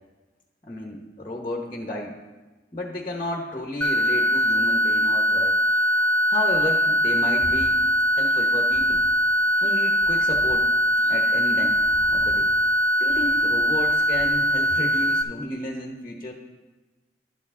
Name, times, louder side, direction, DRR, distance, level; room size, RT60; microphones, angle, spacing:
voice 1, 0.6-2.1 2.7-5.6 6.3-7.8 8.2-9.0 9.6-10.7 11.1-11.8 12.1-12.5 13.0-16.3, left 1 dB, 25° left, 2 dB, 0.8 m, -32 dB
sound 1, 3.8-15.2, equal, 5° left, 0.3 m, -21 dB
Meow, 5.2-14.6, equal, 25° right, 1.6 m, -46 dB
11.5 x 7.0 x 3.6 m, 1.2 s
head